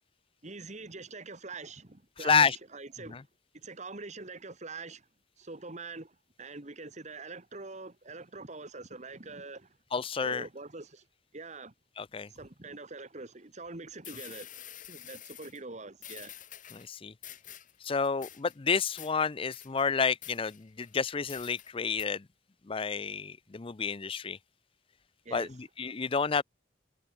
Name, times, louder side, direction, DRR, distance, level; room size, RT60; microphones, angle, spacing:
voice 1, 0.4-3.2 3.5-5.1 5.4-9.8 10.2-11.1 11.3-11.7 12.3-14.6 14.9-16.3 25.3-25.6, right 3 dB, 40° right, 1.8 m, -44 dB
voice 2, 2.2-2.6 3.1-3.2 9.9-10.5 12.0-12.3 16.7-17.1 17.8-22.3 22.7-24.4 25.3-26.4, left 5 dB, 30° left, 0.5 m, -30 dB
sound 1, 13.7-13.8 14.0-15.6 16.0-16.9 17.2-17.8 18.0-18.5 19.0-19.1 19.5-19.8 20.2-20.9 21.3-21.7 22.0-22.1, left 12 dB, 45° left, 4.2 m, -48 dB
head